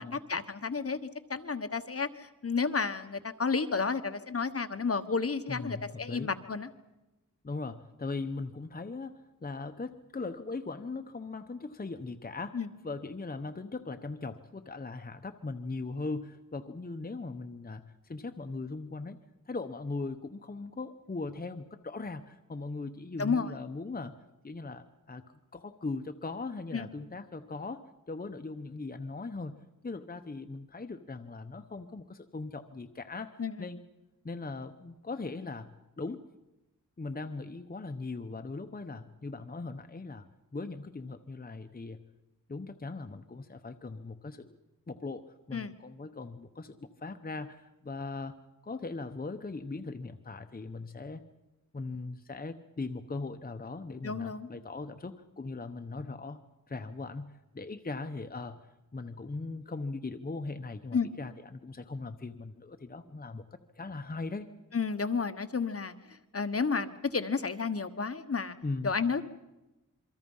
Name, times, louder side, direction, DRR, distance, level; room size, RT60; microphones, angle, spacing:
voice 1, 0.0-6.7 12.5-12.7 23.2-23.5 26.7-26.9 33.4-33.7 45.5-45.7 54.0-54.5 60.9-61.1 64.7-65.9 66.3-68.6 68.8-69.3, left 5 dB, 45° left, 10 dB, 1.2 m, -31 dB
voice 2, 5.5-6.4 7.4-19.2 19.5-24.2 24.4-25.2 25.5-33.8 34.2-36.2 37.0-40.2 40.5-42.1 42.5-44.6 44.9-48.4 48.6-51.2 51.7-56.4 56.7-58.7 58.9-64.5 68.6-69.0, left 3 dB, 30° left, 8 dB, 1.0 m, -39 dB
27.0 x 23.5 x 5.6 m, 0.98 s
wide cardioid pair, 95°, 32 cm